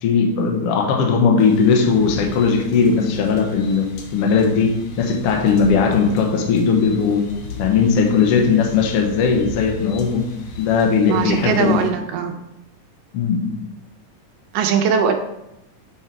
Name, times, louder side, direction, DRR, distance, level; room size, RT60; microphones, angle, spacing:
voice 1, 0.0-7.2 7.6-10.3 10.6-11.8 13.1-13.5, left 5 dB, 90° left, 2 dB, 1.3 m, -18 dB
sound 1, 1.4-11.9, left 2 dB, 70° left, 2.1 m, -36 dB
voice 2, 11.1-12.4 14.5-15.1, right 7 dB, 80° right, 6 dB, 2.2 m, -20 dB
7.8 x 4.5 x 4.5 m, 0.88 s
omnidirectional pair, 4.1 m